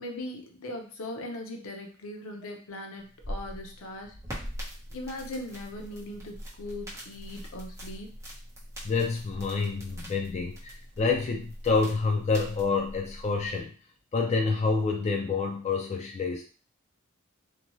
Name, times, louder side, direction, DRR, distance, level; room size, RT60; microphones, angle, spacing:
voice 1, 0.0-4.2 4.9-8.1, left 1 dB, 75° left, 3 dB, 0.6 m, -39 dB
sound 1, 3.0-13.6, equal, 15° right, 0.9 m, -43 dB
voice 2, 8.8-13.7 14.1-16.4, left 4 dB, 30° left, 2 dB, 0.3 m, -28 dB
2.7 x 2.2 x 3.0 m, 0.40 s
head